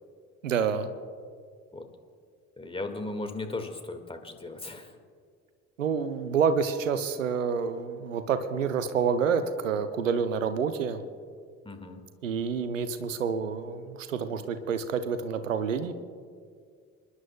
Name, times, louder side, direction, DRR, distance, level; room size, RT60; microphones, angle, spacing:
voice 1, 0.4-0.9 5.8-11.0 12.2-15.9, right 6 dB, 80° right, 11 dB, 0.7 m, -28 dB
voice 2, 2.6-4.9 11.6-12.0, left 2 dB, 15° left, 5 dB, 1.8 m, -36 dB
28.0 x 11.0 x 2.2 m, 2.1 s
figure-of-eight pair, 55°, 38 cm